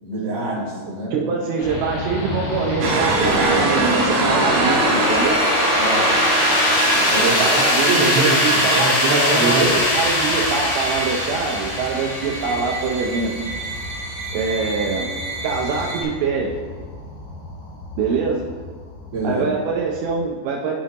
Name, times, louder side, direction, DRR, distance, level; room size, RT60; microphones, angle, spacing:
voice 1, 0.0-1.2 5.7-6.2 6.9-7.4 7.8-9.8 10.2-10.4 19.1-19.4, right 2 dB, 35° right, -7 dB, 1.8 m, -25 dB
voice 2, 1.1-5.4 7.2-9.7 9.9-13.4 14.3-15.1 15.4-16.5 18.0-18.4 19.2-20.8, right 5 dB, 90° right, -1 dB, 2.1 m, -24 dB
sound 1, 1.6-20.2, left 1 dB, 75° left, 3.8 m, -23 dB
sound 2, 2.8-16.0, right 3 dB, 75° right, 2.1 m, -25 dB
12.5 x 5.1 x 2.9 m, 1.5 s
omnidirectional pair, 5.2 m